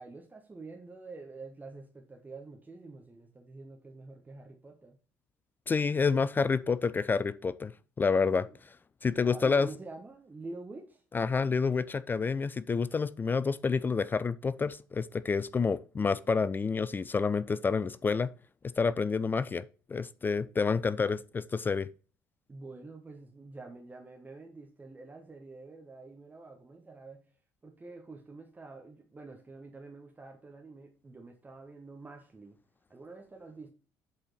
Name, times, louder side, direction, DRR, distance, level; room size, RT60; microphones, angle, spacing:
voice 1, 0.0-5.0 8.4-8.6 9.1-11.0 22.5-27.3 27.6-32.6 32.9-33.7, right 3 dB, 20° right, 1.3 m, -47 dB
voice 2, 5.7-7.7 8.0-8.5 9.0-9.7 11.1-18.3 18.8-21.9, left 5 dB, 25° left, 0.4 m, -28 dB
7.9 x 4.3 x 4.1 m
figure-of-eight pair, 55°, 8 cm